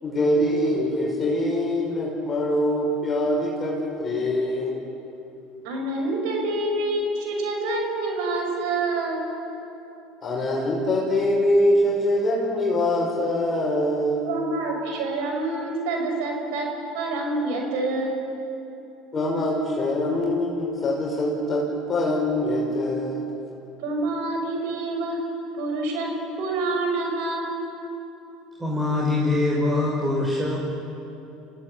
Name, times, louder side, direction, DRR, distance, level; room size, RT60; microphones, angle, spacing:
voice 1, 0.0-4.8 10.2-14.2 19.1-23.2, left 1 dB, 30° left, -2 dB, 5.6 m, -23 dB
voice 2, 5.6-9.3 14.2-16.7 16.9-18.2 23.8-25.2 25.5-26.1 26.4-27.7, right 2 dB, 75° right, 2 dB, 6.2 m, -27 dB
voice 3, 28.6-30.6, left 2 dB, 15° right, -4 dB, 5.9 m, -23 dB
27.5 x 16.5 x 8.8 m, 2.9 s
supercardioid pair, 90°, 0 cm